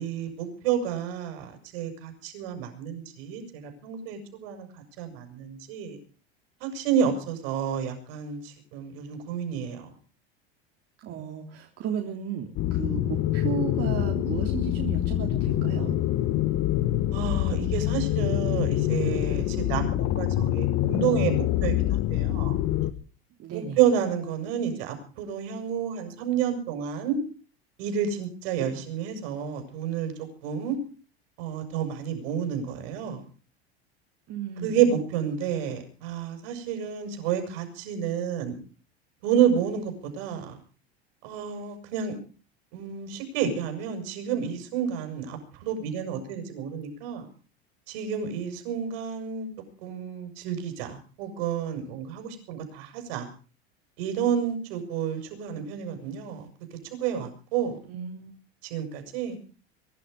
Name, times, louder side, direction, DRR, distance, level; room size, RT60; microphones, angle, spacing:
voice 1, 0.0-6.0 6.6-9.9 17.1-22.5 23.5-27.2 27.8-30.1 30.4-30.8 31.4-33.2 34.6-38.6 39.2-40.6 41.2-42.2 42.7-47.3 47.9-49.5 49.8-53.3 54.0-56.5 57.0-57.8 58.7-59.4, right 8 dB, 70° right, 6 dB, 7.2 m, -30 dB
voice 2, 11.0-16.0 23.4-23.8 28.7-28.8 34.3-34.8 57.8-58.4, right 9 dB, 50° right, 2 dB, 3.2 m, -34 dB
sound 1, 12.6-22.9, left 13 dB, 50° left, 1.8 m, -25 dB
23.5 x 11.5 x 5.3 m, 0.39 s
hypercardioid pair, 90°, 32 cm